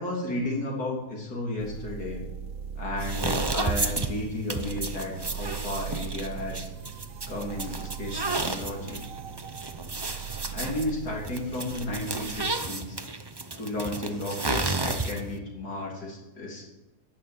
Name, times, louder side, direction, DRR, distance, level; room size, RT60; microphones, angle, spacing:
voice 1, 0.0-2.2 2.8-6.7 7.3-9.0 10.5-13.0 13.6-16.6, left 1 dB, 90° left, -2 dB, 3.8 m, -33 dB
sound 1, 1.6-12.5, right 8 dB, 65° right, 1.1 m, -39 dB
sound 2, 3.0-15.4, right 3 dB, 20° right, 0.7 m, -32 dB
12.5 x 10.5 x 9.2 m, 0.98 s
omnidirectional pair, 1.6 m